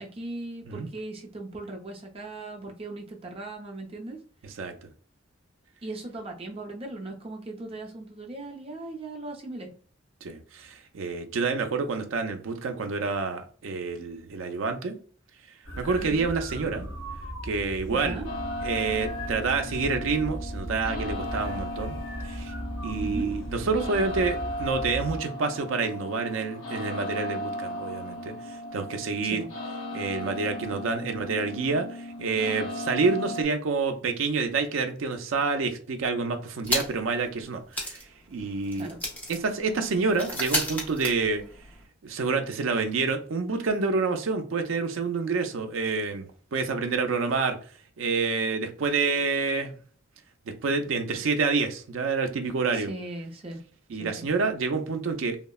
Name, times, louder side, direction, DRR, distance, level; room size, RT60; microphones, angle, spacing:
voice 1, 0.0-4.2 5.8-9.7 17.9-18.3 23.0-23.3 29.2-29.5 38.8-39.0 52.7-53.6 54.0-54.3, right 2 dB, 30° right, 0.5 m, -38 dB
voice 2, 4.4-4.7 10.2-14.9 15.8-16.9 17.4-18.3 18.6-21.9 22.2-22.5 22.8-28.3 28.7-29.4 29.9-38.9 39.3-41.4 42.0-47.6 48.0-49.7 50.6-52.9 53.9-55.5, right 4 dB, 80° right, 0.4 m, -28 dB
sound 1, 15.6-25.2, equal, 70° left, 1.4 m, -37 dB
sound 2, 18.2-33.4, left 1 dB, 85° left, 0.6 m, -36 dB
sound 3, 36.6-37.2 37.4-37.5 37.7-41.8, equal, 10° left, 0.7 m, -33 dB
3.5 x 2.0 x 2.3 m
head